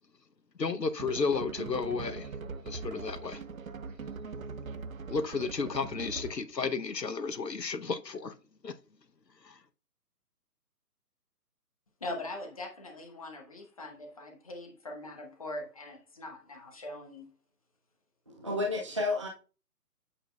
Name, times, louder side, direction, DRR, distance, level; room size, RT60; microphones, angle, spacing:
voice 1, 0.6-2.3 2.6-3.4 5.1-8.3 8.6-8.7 9.4-9.5, left 4 dB, 85° left, 0.9 m, -32 dB
sound 1, 1.0-6.5, right 4 dB, 60° right, 0.6 m, -41 dB
voice 2, 12.0-17.3, left 1 dB, 20° left, 0.9 m, -42 dB
voice 3, 18.3-19.3, left 2 dB, 20° right, 0.7 m, -31 dB
8.7 x 6.6 x 2.3 m
figure-of-eight pair, 145°, 48 cm